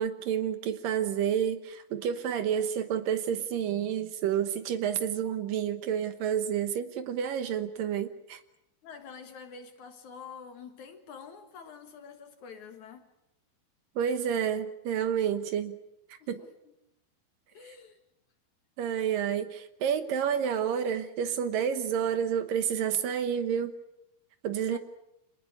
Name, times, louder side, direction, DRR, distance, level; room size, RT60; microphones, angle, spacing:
voice 1, 0.0-8.4 14.0-15.8 16.3-16.4 18.8-23.7 24.4-24.8, right 8 dB, 70° right, 10 dB, 2.7 m, -29 dB
voice 2, 8.8-13.1 15.2-15.3 16.2-16.7 17.5-18.0 24.7-24.8, left 6 dB, 60° left, 7 dB, 2.8 m, -47 dB
26.5 x 19.0 x 8.6 m, 0.84 s
omnidirectional pair, 4.4 m